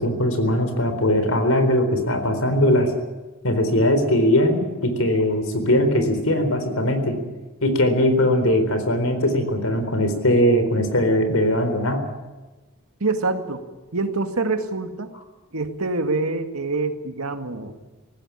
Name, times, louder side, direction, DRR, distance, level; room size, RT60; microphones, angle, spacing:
voice 1, 0.0-2.9 3.4-7.2 7.6-12.0, left 1 dB, 75° left, 8 dB, 4.1 m, -20 dB
voice 2, 13.0-13.6 13.9-15.1 15.5-17.7, right 3 dB, 80° right, 7 dB, 2.0 m, -25 dB
19.0 x 15.5 x 10.0 m, 1.2 s
head